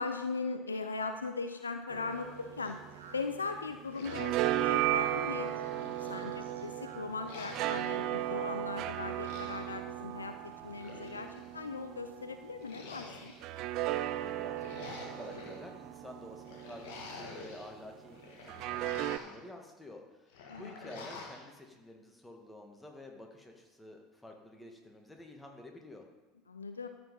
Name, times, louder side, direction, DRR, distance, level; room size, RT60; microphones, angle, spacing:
voice 1, 0.0-2.8 3.1-13.3 20.5-20.7 26.5-26.9, left 4 dB, 85° left, 8 dB, 0.5 m, -39 dB
Speech, 1.8-7.2, right 3 dB, 80° right, 1.3 m, -56 dB
sound 1, 1.9-3.6 3.9-12.6 13.4-17.5 18.5-19.2, right 14 dB, 50° right, 0.4 m, -36 dB
sound 2, 3.9-5.0 5.4-6.7 7.2-8.0 9.0-9.8 10.6-11.5 12.6-13.6 14.4-15.6 16.4-17.7 18.1-19.4 20.3-21.4, left 3 dB, 65° left, 1.8 m, -48 dB
voice 2, 14.1-18.9 19.2-26.1, left 1 dB, 10° left, 2 dB, 1.9 m, -50 dB
13.5 x 5.2 x 5.4 m, 1.2 s
figure-of-eight pair, 75°, 0 cm